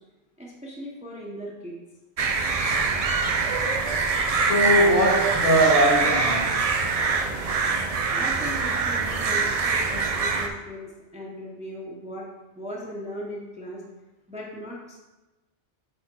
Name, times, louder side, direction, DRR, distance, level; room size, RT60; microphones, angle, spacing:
voice 1, 0.4-1.8 8.1-12.3 12.6-13.8 14.3-15.0, equal, 5° right, -3 dB, 0.9 m, -38 dB
sound 1, 2.2-10.5, right 4 dB, 45° right, 0.5 m, -24 dB
voice 2, 4.4-6.7, right 1 dB, 55° left, -4 dB, 2.2 m, -21 dB
7.8 x 3.5 x 4.5 m, 1.1 s
omnidirectional pair, 1.1 m